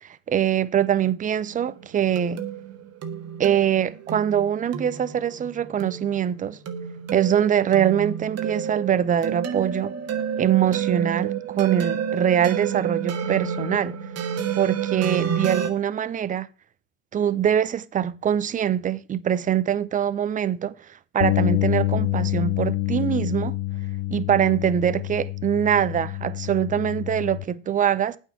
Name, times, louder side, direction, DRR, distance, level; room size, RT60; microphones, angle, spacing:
voice 1, 0.0-2.4 3.4-6.6 7.1-9.9 10.4-14.0 14.6-16.5 17.1-23.6 24.1-28.2, right 9 dB, 20° right, 0.5 m, -23 dB
sound 1, 1.5-15.7, right 8 dB, 40° right, 1.5 m, -30 dB
Bass guitar, 21.2-27.4, left 16 dB, 85° left, 0.6 m, -27 dB
8.9 x 4.5 x 7.1 m
hypercardioid pair, 95°, 41 cm